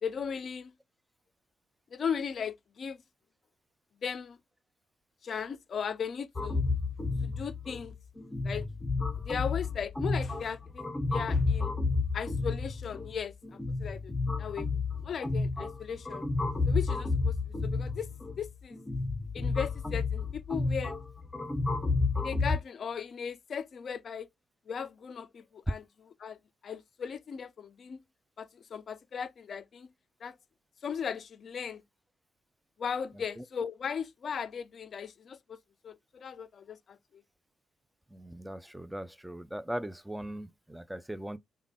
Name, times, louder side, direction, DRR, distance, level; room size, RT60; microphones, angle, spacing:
voice 1, 0.0-0.7 1.9-3.0 4.0-4.4 5.2-6.6 7.2-7.9 8.4-8.7 9.2-10.8 11.1-11.7 12.1-14.1 14.4-14.7 15.0-16.2 16.7-17.3 17.6-18.1 18.4-18.8 19.3-20.9 22.2-24.3 24.7-25.8 26.2-26.4 26.6-28.0 28.4-29.9 30.2-30.3 30.8-31.8 32.8-35.6 35.8-37.2, left 7 dB, 50° left, 0.4 m, -37 dB
sound 1, 6.4-22.6, left 3 dB, 25° left, 0.9 m, -31 dB
voice 2, 33.1-33.4 38.1-41.4, right 1 dB, 5° right, 0.5 m, -40 dB
3.4 x 2.2 x 3.5 m
figure-of-eight pair, 40°, 0 cm